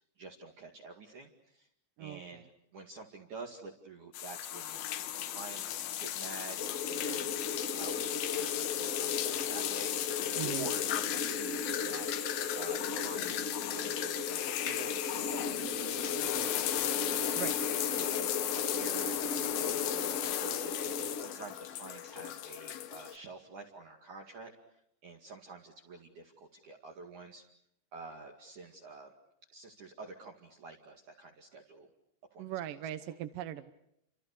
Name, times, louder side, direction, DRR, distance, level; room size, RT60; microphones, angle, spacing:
voice 1, 0.2-1.7 2.0-4.8 5.3-7.3 7.8-9.9 10.4-12.1 12.5-16.5 16.9-17.5 18.0-20.7 21.1-24.5 25.0-27.4 27.9-29.1 29.5-31.9 32.3-32.5, right 3 dB, 50° right, 1 dB, 3.3 m, -48 dB
voice 2, 2.0-2.5 10.4-10.7 17.4-17.6 32.4-33.7, right 12 dB, 70° right, 10 dB, 2.2 m, -40 dB
sound 1, 4.1-23.2, left 12 dB, 70° left, 2.7 m, -35 dB
sound 2, 6.6-21.3, left 4 dB, 30° left, 1.6 m, -38 dB
30.0 x 26.5 x 6.7 m, 0.76 s
omnidirectional pair, 5.3 m